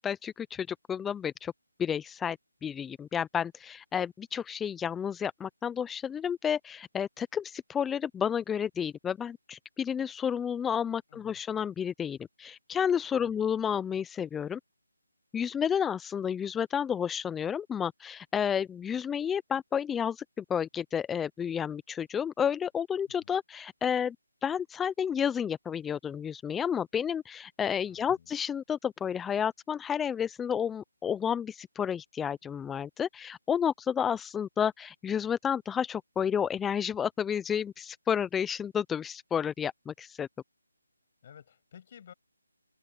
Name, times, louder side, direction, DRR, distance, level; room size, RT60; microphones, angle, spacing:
voice 1, 0.0-1.5 1.8-14.6 15.3-24.2 24.4-40.3, left 8 dB, 5° left, 0.5 m, -31 dB
voice 2, 11.1-11.4 13.1-13.5 23.2-23.3 27.9-28.3 41.2-42.1, left 8 dB, 40° left, 7.3 m, -53 dB
open air
figure-of-eight pair, 160°, 0 cm